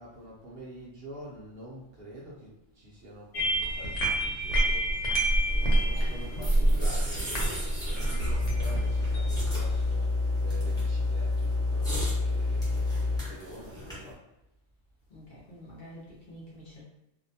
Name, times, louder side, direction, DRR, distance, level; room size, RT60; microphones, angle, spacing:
voice 1, 0.0-5.0 5.7-12.6 13.3-14.2, right 1 dB, 60° right, -5 dB, 0.7 m, -47 dB
sound 1, 3.3-9.9, right 1 dB, 75° left, 1.0 m, -27 dB
sound 2, 5.5-14.1, equal, 5° left, 0.5 m, -40 dB
voice 2, 5.6-7.0 15.1-16.8, left 1 dB, 50° left, -6 dB, 0.7 m, -47 dB
sound 3, 8.2-13.2, left 3 dB, 85° right, 1.0 m, -28 dB
2.5 x 2.1 x 2.7 m, 0.87 s
omnidirectional pair, 1.3 m